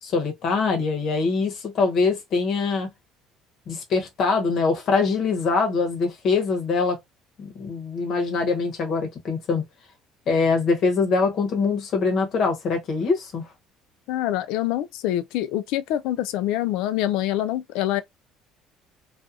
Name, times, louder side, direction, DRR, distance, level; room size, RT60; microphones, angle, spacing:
voice 1, 0.0-2.9 3.7-7.0 7.4-9.6 10.3-13.5, left 4 dB, 55° left, 1.0 m, -23 dB
voice 2, 14.1-18.0, left 13 dB, 80° left, 0.3 m, -25 dB
2.5 x 2.4 x 2.6 m
supercardioid pair, 90°, 0 cm